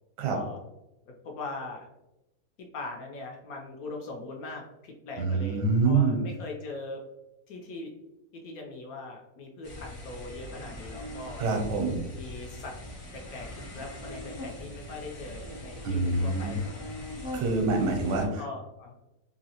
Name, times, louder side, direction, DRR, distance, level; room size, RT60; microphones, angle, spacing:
voice 1, 0.3-0.6 1.1-1.9 2.6-7.0 7.5-7.9 8.3-11.5 12.1-12.8 13.1-16.8 18.4-18.9, left 3 dB, 70° left, 1 dB, 0.9 m, -41 dB
voice 2, 5.2-6.2 11.4-12.0 15.8-16.6 17.3-18.4, right 3 dB, 90° right, 2 dB, 1.4 m, -26 dB
sound 1, 9.6-18.2, left 1 dB, 50° left, 0.6 m, -41 dB
3.0 x 2.7 x 2.8 m, 0.96 s
omnidirectional pair, 1.8 m